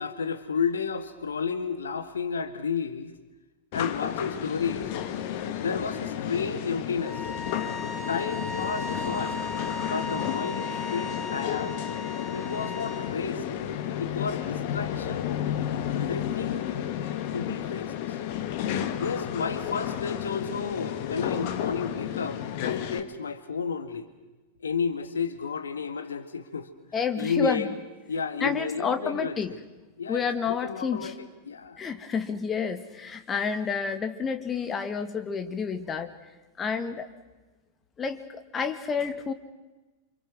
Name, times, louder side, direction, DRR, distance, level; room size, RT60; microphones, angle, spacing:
voice 1, 0.0-3.1 3.7-4.9 5.5-7.3 8.1-9.4 9.8-11.8 12.3-13.5 14.0-15.3 15.9-16.6 17.3-18.2 18.9-24.1 24.6-26.7 27.2-27.8 28.1-29.4 30.0-31.8, left 5 dB, 70° left, 11 dB, 1.8 m, -32 dB
sound 1, 3.7-23.0, left 10 dB, 50° left, 2.0 m, -32 dB
sound 2, 7.0-13.1, left 1 dB, 15° right, 5.6 m, -36 dB
voice 2, 26.9-27.7 28.4-29.5 30.1-31.1 31.8-36.1 36.6-37.1 38.0-39.3, left 5 dB, 20° left, 8 dB, 2.2 m, -29 dB
29.0 x 26.5 x 6.2 m, 1.1 s
figure-of-eight pair, 90°, 0 cm